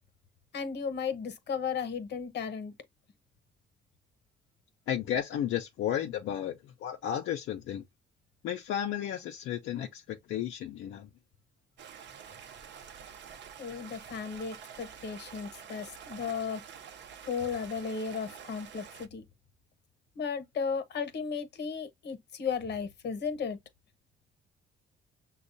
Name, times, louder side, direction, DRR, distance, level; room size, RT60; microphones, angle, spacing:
voice 1, 0.5-2.7 13.6-16.6 17.3-19.2 20.2-23.6, left 6 dB, 60° left, 1.0 m, -35 dB
voice 2, 4.9-6.6 6.8-7.8 8.4-11.1, left 10 dB, 80° left, 0.6 m, -33 dB
Stream, 11.8-19.1, right 7 dB, 65° right, 0.7 m, -48 dB
6.1 x 2.3 x 2.6 m
cardioid pair, 90°, 20 cm